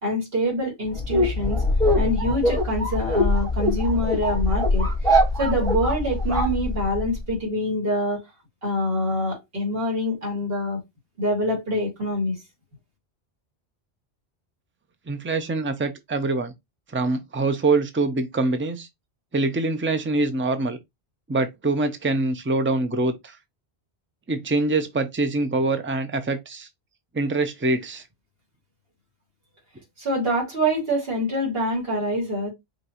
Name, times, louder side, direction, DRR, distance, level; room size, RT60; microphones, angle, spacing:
voice 1, 0.0-1.6 2.0-4.9 5.4-8.2 8.6-10.8 11.2-12.4 30.0-32.5, equal, 60° right, 2.7 m, -25 dB
sound 1, 0.9-7.2, left 1 dB, 5° left, 1.9 m, -22 dB
voice 2, 15.1-16.5 16.9-18.9 19.3-20.8 21.3-23.4 24.3-26.7 27.1-28.0, right 2 dB, 15° right, 0.5 m, -24 dB
5.1 x 3.0 x 2.9 m
omnidirectional pair, 1.1 m